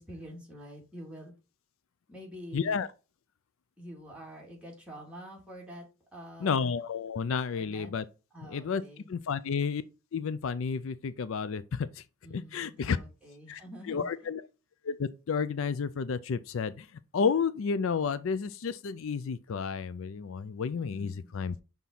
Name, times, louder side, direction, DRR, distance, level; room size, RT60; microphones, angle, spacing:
voice 1, 0.0-1.3 2.1-2.8 3.8-5.9 6.1-6.7 7.5-7.9 8.3-9.1 12.2-14.3 20.8-21.3, equal, 5° right, 2.2 m, -47 dB
voice 2, 2.5-2.9 6.4-8.0 8.5-8.8 9.1-9.8 10.1-12.0 12.3-13.0 13.5-13.6 13.9-14.4 14.8-16.9 17.1-21.5, left 6 dB, 70° left, 0.4 m, -31 dB
5.9 x 3.6 x 5.5 m
head